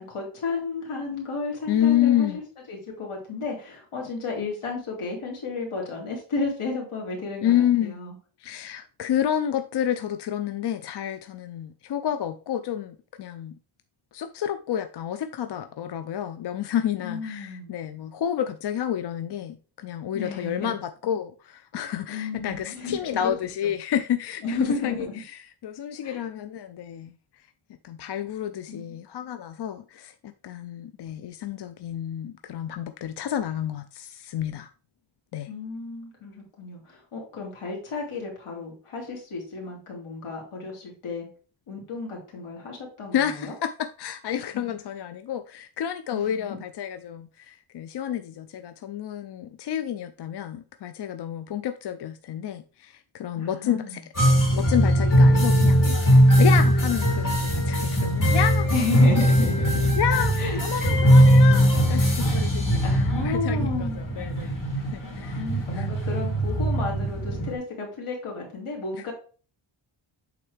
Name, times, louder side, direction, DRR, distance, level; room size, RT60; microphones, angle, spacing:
voice 1, 0.0-2.3 2.7-8.1 17.0-17.7 20.1-20.7 22.1-23.3 24.4-25.2 26.0-26.2 28.7-29.0 35.5-41.3 41.7-43.5 46.1-46.6 53.4-54.0 58.7-60.0 60.4-60.6 62.8-64.0 65.4-69.1, left 3 dB, 80° left, 2.9 m, -33 dB
voice 2, 1.7-2.4 7.4-8.0 8.4-13.5 14.1-27.1 27.8-30.1 30.4-34.7 35.3-35.5 43.1-58.7 60.0-60.3 60.6-62.7 63.2-64.6 64.9-65.4 65.7-65.9 68.9-69.0, left 10 dB, 55° left, 0.5 m, -29 dB
sound 1, 54.1-67.6, equal, 40° left, 2.8 m, -20 dB
8.6 x 3.9 x 3.4 m
cardioid pair, 100°, 50 cm